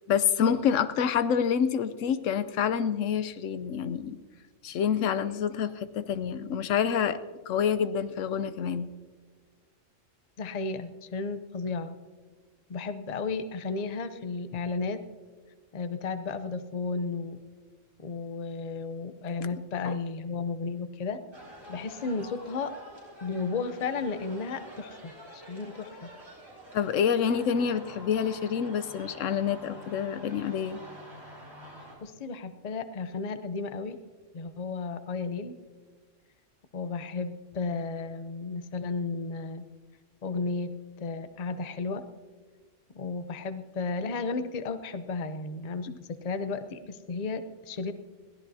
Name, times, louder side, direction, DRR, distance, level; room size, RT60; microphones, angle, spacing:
voice 1, 0.1-4.2 4.6-7.2 7.5-8.9 19.8-20.0 26.7-30.8, left 7 dB, 85° left, 13 dB, 1.0 m, -27 dB
voice 2, 10.4-12.0 12.7-15.0 15.7-17.4 18.0-21.2 21.7-22.7 23.2-26.1 32.0-34.0 34.3-35.5 36.7-39.6 40.2-40.7 41.0-42.0 42.9-47.9, left 4 dB, 40° left, 11 dB, 0.7 m, -33 dB
Demonstrations in the streets of Mexico City, 21.3-32.0, equal, 20° right, 4.4 m, -47 dB
21.5 x 16.0 x 2.7 m, 1.4 s
omnidirectional pair, 1.3 m